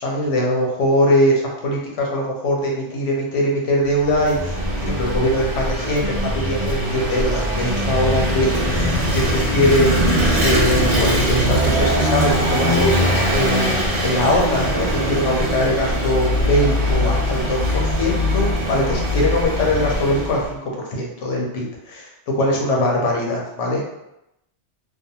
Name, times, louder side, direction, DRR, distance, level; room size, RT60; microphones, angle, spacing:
voice 1, 0.0-4.6 4.9-10.2 10.4-22.1 22.4-23.9, left 1 dB, 85° left, -1 dB, 1.0 m, -21 dB
Vehicle / Engine, 3.9-20.5, equal, 50° right, 0.4 m, -21 dB
2.6 x 2.2 x 2.7 m, 0.86 s
omnidirectional pair, 1.2 m